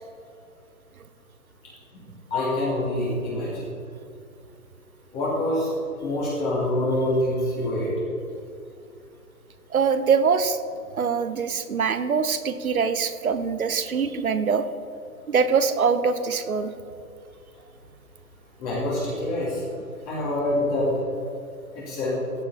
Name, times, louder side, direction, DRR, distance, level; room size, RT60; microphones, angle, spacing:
voice 1, 2.3-3.6 5.1-5.7 6.0-7.9 18.6-19.6 20.1-20.9 21.7-22.1, left 1 dB, 20° left, -8 dB, 3.0 m, -25 dB
voice 2, 9.7-10.6 10.9-14.7 15.3-16.7, right 6 dB, 60° right, 11 dB, 1.1 m, -23 dB
15.0 x 9.8 x 4.3 m, 2.5 s
figure-of-eight pair, 140°, 47 cm